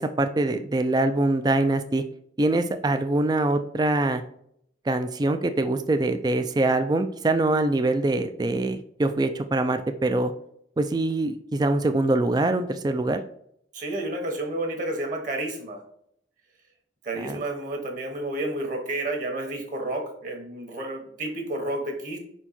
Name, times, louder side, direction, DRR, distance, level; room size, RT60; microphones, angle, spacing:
voice 1, 0.0-2.0 2.4-4.2 4.9-10.3 10.8-13.2 17.2-17.4, right 2 dB, 20° right, 8 dB, 0.3 m, -24 dB
voice 2, 13.7-15.8 17.0-22.2, right 1 dB, 45° right, 2 dB, 1.4 m, -31 dB
5.4 x 4.5 x 4.2 m, 0.70 s
head